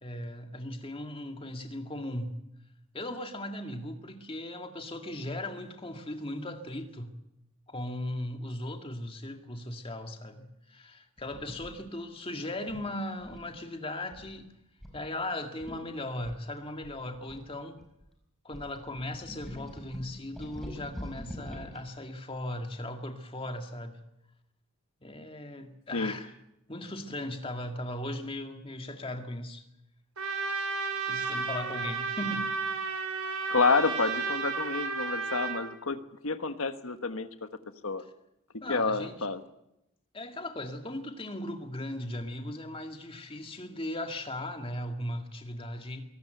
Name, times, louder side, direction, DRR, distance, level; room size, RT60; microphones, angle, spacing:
voice 1, 0.0-2.3 2.9-7.1 7.7-14.5 14.9-17.8 18.4-24.0 25.0-26.3 26.7-29.6 31.1-32.5 38.6-39.3 40.1-46.1, left 1 dB, 25° left, 2.0 m, -38 dB
sound 1, 11.2-11.7 12.7-13.6 14.1-14.4 14.8-15.0 15.3-15.4 15.6-15.8 16.2-18.0 18.5-21.8, equal, ahead, 5.3 m, -44 dB
Trumpet, 30.2-35.6, right 4 dB, 90° right, 4.4 m, -32 dB
voice 2, 33.5-36.0 36.2-37.3 37.8-38.0 38.7-39.4, left 4 dB, 70° left, 1.4 m, -28 dB
23.5 x 18.0 x 8.0 m
head